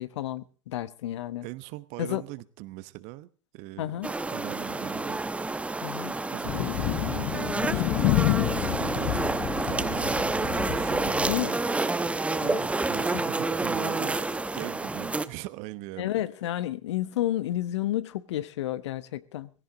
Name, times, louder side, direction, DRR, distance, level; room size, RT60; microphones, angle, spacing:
voice 1, 0.0-1.4 2.0-2.2 3.8-4.1 5.8-6.1 11.3-11.5 12.4-12.7 13.1-13.2 16.0-19.5, left 13 dB, 60° left, 1.1 m, -31 dB
voice 2, 1.4-4.0 4.3-5.2 6.3-9.2 9.5-12.2 12.6-14.3 14.5-16.2, right 18 dB, 45° right, 1.0 m, -41 dB
sound 1, 4.0-15.2, right 3 dB, 10° right, 0.9 m, -29 dB
Thunder, 6.4-11.5, left 20 dB, 40° left, 0.7 m, -29 dB
18.5 x 16.5 x 3.9 m
figure-of-eight pair, 90°, 16 cm